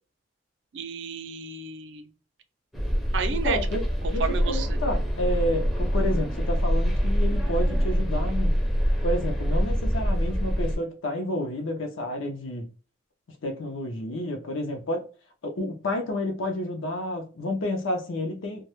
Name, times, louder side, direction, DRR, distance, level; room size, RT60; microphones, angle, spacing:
voice 1, 0.7-2.1 3.1-3.6 4.0-4.8, right 5 dB, 60° right, 0.4 m, -32 dB
sound 1, 2.7-10.8, equal, ahead, 0.5 m, -25 dB
voice 2, 3.4-3.8 4.1-8.6 9.0-12.7 13.4-15.0 15.4-18.6, left 1 dB, 85° left, 0.5 m, -30 dB
2.1 x 2.0 x 2.9 m
head